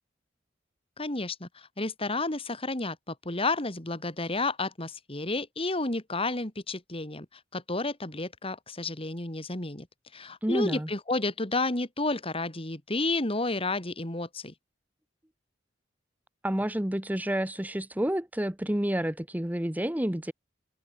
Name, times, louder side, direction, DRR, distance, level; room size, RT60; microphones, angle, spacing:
voice 1, 1.0-7.3 7.5-9.9 10.1-14.5, left 2 dB, 30° left, 3.2 m, -31 dB
voice 2, 10.4-10.9 16.4-20.3, right 1 dB, 10° right, 1.0 m, -29 dB
head